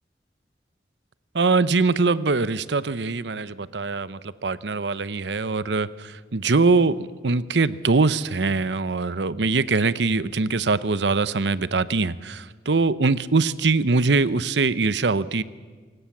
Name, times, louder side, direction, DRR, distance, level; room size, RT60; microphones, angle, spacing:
voice 1, 1.3-15.4, right 3 dB, 85° right, 16 dB, 0.8 m, -22 dB
27.0 x 18.0 x 7.3 m, 1.4 s
head